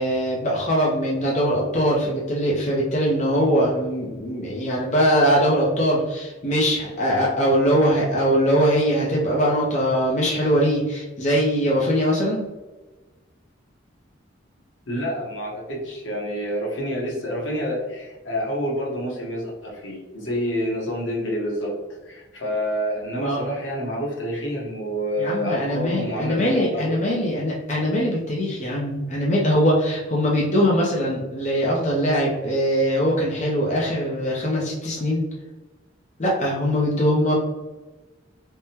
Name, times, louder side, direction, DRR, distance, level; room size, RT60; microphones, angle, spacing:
voice 1, 0.0-12.4 23.2-23.4 25.2-35.2 36.2-37.3, equal, 40° left, -4 dB, 0.6 m, -21 dB
voice 2, 14.9-27.0, equal, 80° left, -3 dB, 1.0 m, -28 dB
3.5 x 2.1 x 2.7 m, 1.2 s
head